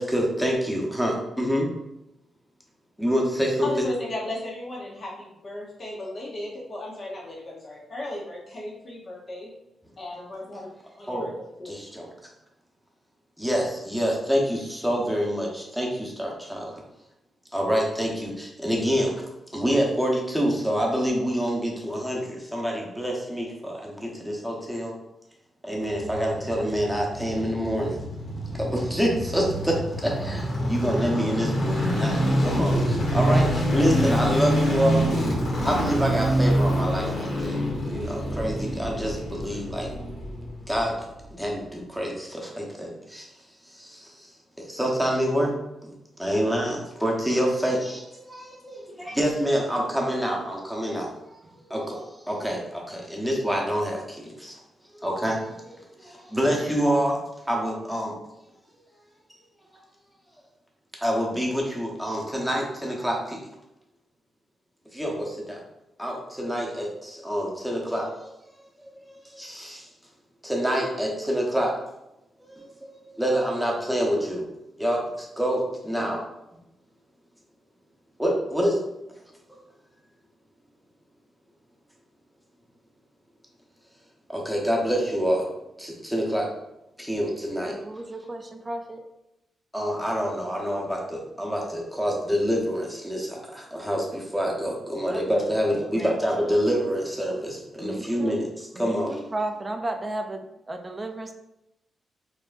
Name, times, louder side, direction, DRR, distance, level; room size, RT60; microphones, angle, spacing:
voice 1, 0.0-1.7 3.0-3.8 11.1-11.3 11.6-12.1 13.4-16.7 17.5-19.2 19.5-24.9 25.6-28.0 28.6-35.0 35.6-37.6 37.9-39.9 40.7-41.0 41.3-43.2 43.7-44.3 44.6-45.6 45.8-51.1 51.4-54.6 54.9-57.2 57.5-58.2 61.0-63.4 64.9-65.6 66.0-68.3 68.8-69.9 70.4-71.7 72.4-74.4 74.8-76.2 78.2-78.8 84.3-85.5 85.8-86.5 87.0-87.8 89.7-99.2, equal, ahead, -2 dB, 0.9 m, -27 dB
voice 2, 3.6-9.5 10.0-11.7, left 1 dB, 45° left, -4 dB, 0.9 m, -36 dB
sound 1, 25.8-41.0 41.3-41.4, equal, 70° left, 1.4 m, -26 dB
voice 3, 87.7-89.0 95.1-95.3 95.7-96.1 97.8-98.4 98.7-101.3, right 2 dB, 20° right, 5 dB, 0.4 m, -34 dB
4.5 x 2.9 x 2.5 m, 0.87 s
cardioid pair, 115°, 0 cm